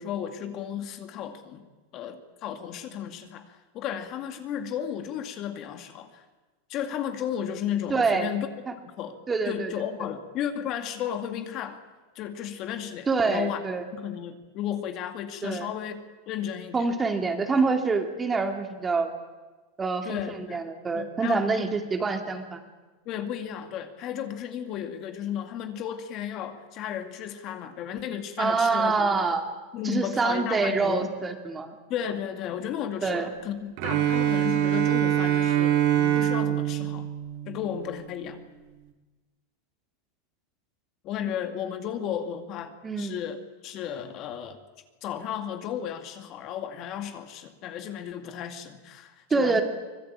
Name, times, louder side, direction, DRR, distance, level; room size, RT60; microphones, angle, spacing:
voice 1, 0.0-1.6 1.9-6.2 6.7-8.5 9.0-9.2 9.5-11.8 12.2-13.6 13.9-16.0 16.3-16.9 20.0-20.6 20.9-21.7 23.1-29.4 29.7-31.1 31.9-37.1 37.5-38.4 41.0-43.4 43.6-44.6 45.0-49.6, left 9 dB, 40° left, 8 dB, 2.3 m, -34 dB
voice 2, 7.9-8.3 8.7-8.8 9.3-9.7 13.1-13.8 15.4-15.7 16.7-19.1 19.8-22.6 28.4-29.4 29.8-31.8 33.0-33.3 42.8-43.1 49.3-49.6, right 4 dB, 15° right, 6 dB, 2.6 m, -26 dB
Bowed string instrument, 33.8-37.9, right 11 dB, 55° right, 3.3 m, -24 dB
24.5 x 21.0 x 8.8 m, 1.2 s
supercardioid pair, 145°, 0 cm